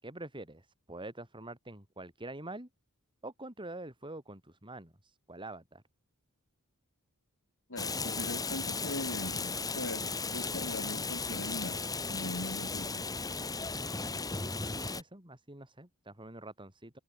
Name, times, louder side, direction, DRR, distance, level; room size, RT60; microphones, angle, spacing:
voice 1, 0.0-2.7 3.2-5.8 13.8-17.0, right 2 dB, 20° right, 6.6 m, -46 dB
voice 2, 7.7-11.8 12.1-13.1, left 1 dB, 60° left, 6.0 m, -41 dB
Rain, 7.8-15.0, left 4 dB, 15° left, 1.5 m, -36 dB
head